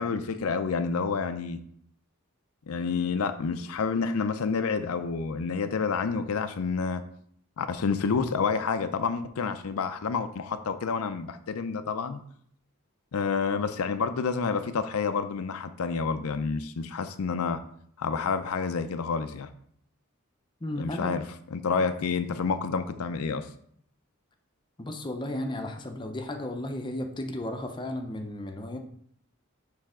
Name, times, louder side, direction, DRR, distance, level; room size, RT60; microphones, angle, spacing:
voice 1, 0.0-1.6 2.7-7.0 7.6-12.2 13.1-17.6 18.0-19.5 20.8-21.2 21.5-23.5, left 5 dB, 80° left, 9 dB, 0.5 m, -29 dB
voice 2, 20.6-21.2 24.8-28.8, left 1 dB, 20° left, 4 dB, 0.6 m, -34 dB
6.6 x 3.4 x 4.9 m, 0.64 s
head